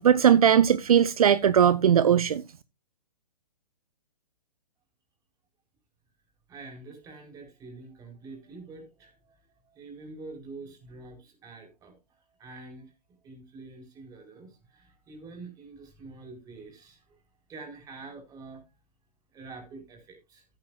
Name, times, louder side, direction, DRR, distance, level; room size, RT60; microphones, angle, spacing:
voice 1, 0.0-2.4, right 9 dB, 60° right, 0.6 m, -19 dB
voice 2, 6.5-12.9 13.2-17.2 17.5-18.6 19.3-20.5, right 3 dB, 20° right, 4.2 m, -46 dB
14.0 x 9.8 x 2.3 m
figure-of-eight pair, 125°, 21 cm